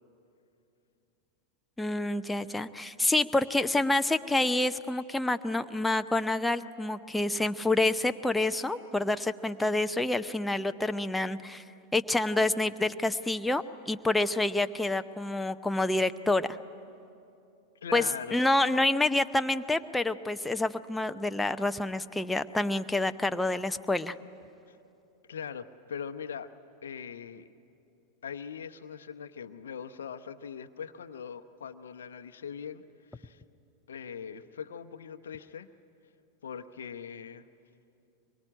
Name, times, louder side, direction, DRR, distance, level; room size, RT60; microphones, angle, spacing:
voice 1, 1.8-11.6 11.9-16.5 17.9-18.0 18.3-24.1, left 2 dB, 5° left, 10 dB, 0.7 m, -28 dB
voice 2, 17.8-18.4 24.7-24.8 25.3-26.5 26.8-27.5 28.2-32.8 33.1-33.4 33.9-35.7 36.4-37.4, left 7 dB, 65° left, 8 dB, 0.8 m, -41 dB
24.0 x 23.5 x 10.0 m, 2.7 s
figure-of-eight pair, 90°, 0 cm